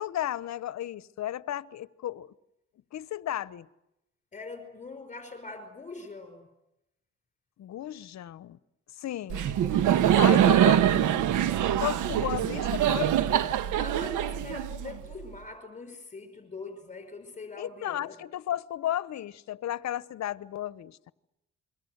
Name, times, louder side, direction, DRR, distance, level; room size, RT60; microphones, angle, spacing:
voice 1, 0.0-2.3 2.9-3.7 7.6-8.6 9.0-9.4 10.2-10.8 11.8-13.2 17.6-21.1, left 12 dB, 65° left, 1.0 m, -34 dB
voice 2, 4.3-6.5 9.3-9.8 10.3-11.4 13.7-18.2, left 3 dB, 25° left, 5.3 m, -43 dB
Laughter, 9.3-15.1, right 10 dB, 85° right, 1.3 m, -24 dB
28.5 x 23.0 x 8.0 m
cardioid pair, 90°, 30 cm